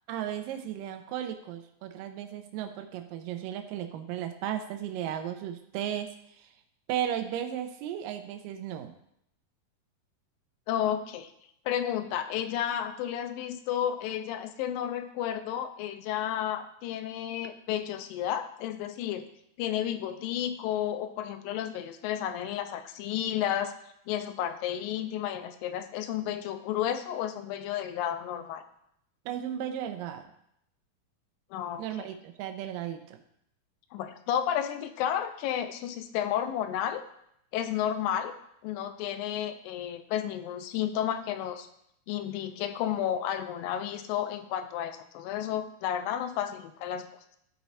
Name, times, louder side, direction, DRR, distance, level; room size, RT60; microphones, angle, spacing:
voice 1, 0.1-6.1 6.4-6.5 6.9-8.9 29.3-30.2 31.8-33.2, right 10 dB, 75° right, 7 dB, 2.3 m, -35 dB
voice 2, 10.7-11.3 11.7-19.3 19.6-23.7 24.1-28.6 31.5-31.8 33.9-37.0 37.5-38.3 38.6-41.7 42.1-47.1, left 10 dB, 80° left, 9 dB, 2.3 m, -32 dB
12.0 x 4.5 x 4.2 m, 0.75 s
omnidirectional pair, 4.2 m